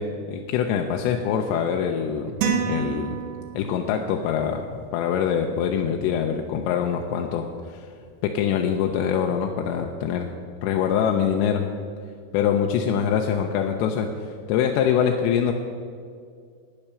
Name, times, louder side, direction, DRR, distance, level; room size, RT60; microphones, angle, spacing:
voice 1, 0.0-2.4 2.6-3.2 3.5-4.7 4.9-7.9 8.2-10.3 10.6-11.7 12.3-15.5, left 8 dB, 85° left, 3 dB, 2.9 m, -24 dB
sound 1, 2.4-3.9, right 6 dB, 85° right, 3.3 m, -27 dB
10.0 x 9.3 x 6.8 m, 2.2 s
omnidirectional pair, 5.0 m